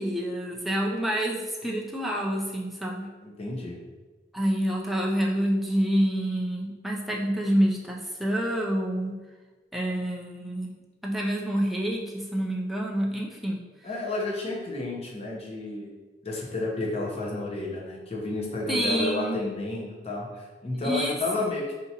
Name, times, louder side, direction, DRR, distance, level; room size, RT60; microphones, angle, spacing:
voice 1, 0.0-3.1 4.3-9.2 9.7-10.7 11.0-13.6 18.7-19.4 20.8-21.2, equal, ahead, -2 dB, 0.4 m, -27 dB
voice 2, 3.2-3.8 13.8-15.9 16.2-21.7, left 2 dB, 35° left, -2 dB, 0.7 m, -31 dB
4.6 x 2.8 x 2.8 m, 1.3 s
head